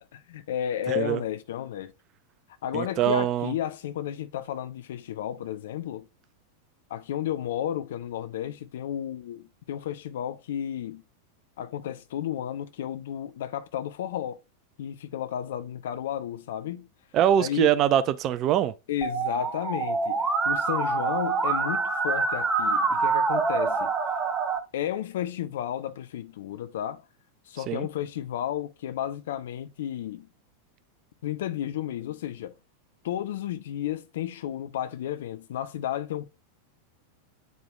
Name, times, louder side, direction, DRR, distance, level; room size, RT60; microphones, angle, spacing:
voice 1, 0.0-1.9 2.6-6.1 6.9-11.0 11.6-14.4 14.8-16.9 17.4-17.7 18.9-23.9 24.7-27.0 27.5-30.3 31.2-32.5 33.0-36.3, left 11 dB, 55° left, 0.6 m, -32 dB
voice 2, 0.9-1.2 2.7-3.5 17.1-18.7 27.7-27.9, right 11 dB, 35° right, 0.5 m, -23 dB
Musical instrument, 19.0-24.6, right 4 dB, 10° right, 1.2 m, -26 dB
9.2 x 4.8 x 2.3 m
figure-of-eight pair, 90°, 0 cm